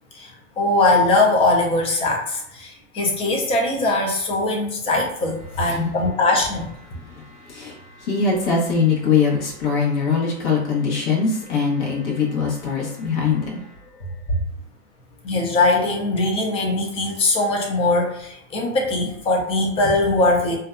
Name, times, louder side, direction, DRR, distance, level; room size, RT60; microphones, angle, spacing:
voice 1, 0.6-6.7 15.2-20.6, left 2 dB, 15° left, 1 dB, 0.3 m, -21 dB
voice 2, 7.1-13.6, left 5 dB, 65° left, -3 dB, 1.0 m, -22 dB
2.6 x 2.2 x 2.4 m, 0.73 s
hypercardioid pair, 125°, 38 cm